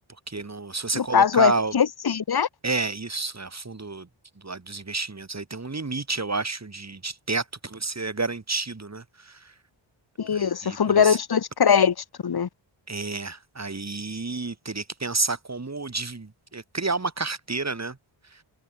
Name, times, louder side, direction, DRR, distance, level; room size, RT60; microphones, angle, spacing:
voice 1, 0.3-1.7 2.6-4.1 4.4-9.5 10.3-11.2 12.9-18.0 18.3-18.4, right 3 dB, 30° right, 2.9 m, -30 dB
voice 2, 0.9-2.5 10.2-11.9 12.2-12.5, left 7 dB, 50° left, 1.2 m, -21 dB
wide cardioid pair, 80°, 49 cm